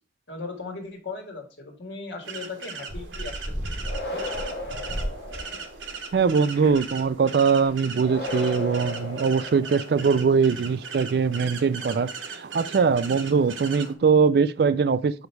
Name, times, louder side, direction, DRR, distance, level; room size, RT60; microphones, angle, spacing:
voice 1, 0.3-3.3 3.7-3.8 4.1-4.4, left 3 dB, 75° left, 1.8 m, -37 dB
sound 1, 2.2-13.9, right 5 dB, 90° right, 0.9 m, -39 dB
sound 2, 2.9-6.2 6.5-7.0 7.3-7.4 7.6-7.7, equal, 5° left, 2.9 m, -35 dB
sound 3, 3.8-5.9 8.0-10.1, left 2 dB, 60° left, 1.9 m, -35 dB
voice 2, 6.1-15.3, right 5 dB, 55° right, 0.3 m, -22 dB
5.2 x 5.1 x 4.5 m
head